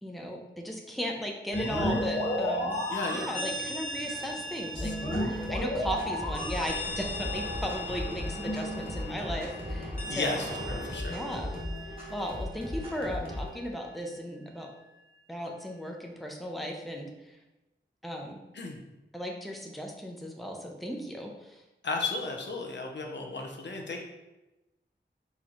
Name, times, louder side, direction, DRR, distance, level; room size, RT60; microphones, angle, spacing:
voice 1, 0.0-2.8 3.1-4.9 5.3-10.4 11.0-11.5 12.1-14.7 15.3-17.4 18.0-18.4 19.1-21.6, equal, ahead, 0 dB, 0.6 m, -36 dB
sound 1, 1.5-13.1, left 1 dB, 50° left, 1.5 m, -35 dB
sound 2, 1.7-10.9, right 1 dB, 50° right, 0.9 m, -44 dB
voice 2, 2.9-3.3 4.8-4.9 10.1-11.2 18.5-18.8 21.8-24.0, left 3 dB, 70° left, 2 dB, 0.7 m, -34 dB
sound 3, 4.7-13.5, left 1 dB, 30° right, 1.4 m, -38 dB
4.1 x 3.7 x 3.0 m, 0.99 s
wide cardioid pair, 85°, 19 cm